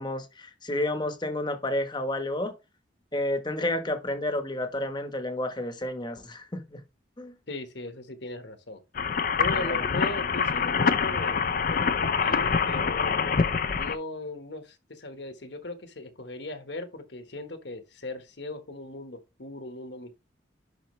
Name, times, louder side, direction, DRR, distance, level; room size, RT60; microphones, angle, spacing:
voice 1, 0.0-2.5 3.1-6.8 7.2-7.4 9.5-9.9, left 1 dB, 25° left, 1.1 m, -31 dB
voice 2, 7.5-8.8 9.4-13.2 13.8-20.2, left 2 dB, 65° left, 1.3 m, -38 dB
sound 1, 9.0-14.0, left 5 dB, 45° left, 0.5 m, -25 dB
11.0 x 4.2 x 3.1 m
head